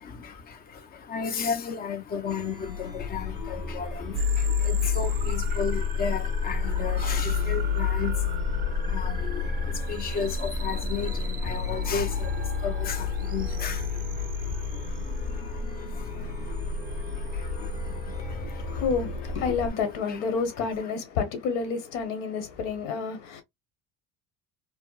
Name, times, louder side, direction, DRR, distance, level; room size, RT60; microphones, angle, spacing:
voice 1, 0.0-18.8 20.1-20.2, left 6 dB, 30° left, 0.5 m, -35 dB
Chime, 2.2-19.7, left 2 dB, 45° left, 1.7 m, -35 dB
sound 1, 4.1-18.2, left 6 dB, 30° right, 0.4 m, -30 dB
voice 2, 18.1-23.4, left 5 dB, 85° left, 1.2 m, -30 dB
4.4 x 2.0 x 2.2 m
cardioid pair, 150°, 31 cm